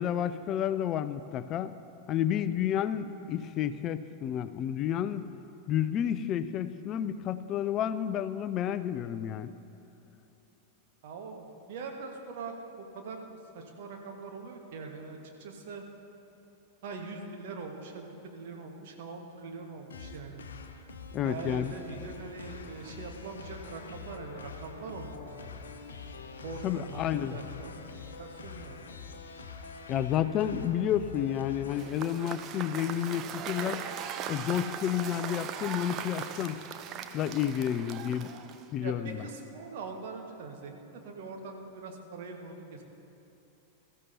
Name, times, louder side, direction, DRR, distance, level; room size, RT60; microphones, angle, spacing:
voice 1, 0.0-1.7 2.1-5.3 5.7-9.5 21.1-21.7 26.6-27.4 29.9-33.9 34.3-36.6 37.1-38.3 38.7-39.3, left 10 dB, 35° left, 13 dB, 0.5 m, -30 dB
voice 2, 11.0-13.2 13.5-15.8 16.8-20.4 21.2-25.7 26.4-27.7 28.2-28.9 38.8-42.8, right 4 dB, 50° right, 2 dB, 1.6 m, -42 dB
sound 1, 19.9-31.9, left 5 dB, 65° left, 0.8 m, -44 dB
Cheering / Applause / Crowd, 31.7-38.8, right 8 dB, 35° right, 0.7 m, -39 dB
21.5 x 14.0 x 2.8 m, 2.9 s
figure-of-eight pair, 90°, 0 cm